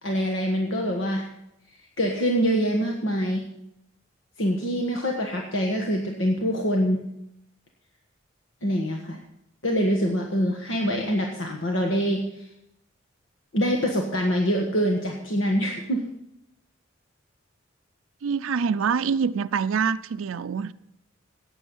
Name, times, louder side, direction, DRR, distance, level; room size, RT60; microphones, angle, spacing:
voice 1, 0.0-1.3 2.0-3.4 4.4-7.0 8.6-9.2 9.6-12.5 13.5-16.0, equal, 70° left, 1.5 m, -25 dB
voice 2, 18.2-20.7, right 6 dB, 90° right, 0.4 m, -25 dB
15.0 x 9.3 x 5.5 m
head